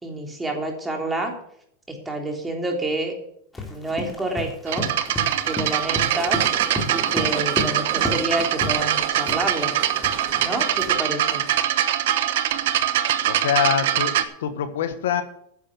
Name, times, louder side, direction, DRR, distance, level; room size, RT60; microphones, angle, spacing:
voice 1, 0.0-1.3 1.9-3.1 3.7-4.9 5.4-6.5 6.9-9.8 10.3-11.5, right 2 dB, 15° right, 2 dB, 3.4 m, -28 dB
Run, 3.5-8.3 8.6-8.9 9.3-11.1, left 2 dB, 15° left, 3.0 m, -32 dB
sound 1, 4.7-14.2, right 11 dB, 75° right, 1.0 m, -23 dB
sound 2, 5.7-11.6, right 6 dB, 45° right, 2.5 m, -37 dB
voice 2, 13.2-15.2, left 8 dB, 80° left, 10 dB, 1.4 m, -25 dB
10.0 x 7.1 x 8.0 m, 0.69 s
hypercardioid pair, 115°, 0 cm